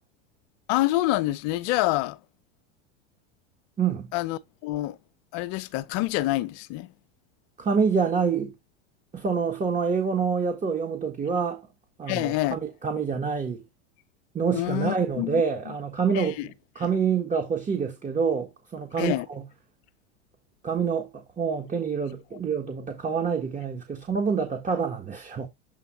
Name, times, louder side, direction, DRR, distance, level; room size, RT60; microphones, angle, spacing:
voice 1, 0.7-2.2 4.1-5.0 5.3-6.9 12.1-12.6 14.5-15.7 16.1-16.5 19.0-19.3, left 17 dB, 55° left, 0.8 m, -27 dB
voice 2, 3.8-4.1 7.6-8.5 9.1-11.6 12.0-13.6 14.3-16.4 16.7-19.5 20.6-25.5, right 6 dB, 20° right, 1.6 m, -27 dB
7.9 x 3.5 x 4.5 m
hypercardioid pair, 90°, 36 cm